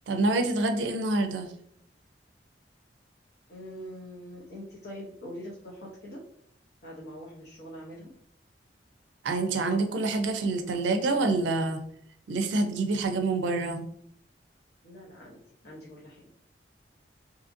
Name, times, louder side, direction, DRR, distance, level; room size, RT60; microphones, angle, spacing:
voice 1, 0.1-1.5 9.2-11.8 12.3-13.9, right 3 dB, 80° right, 7 dB, 0.4 m, -27 dB
voice 2, 3.5-6.2 6.8-8.1 14.8-16.2, equal, 65° left, -5 dB, 0.7 m, -43 dB
2.7 x 2.5 x 2.5 m, 0.68 s
head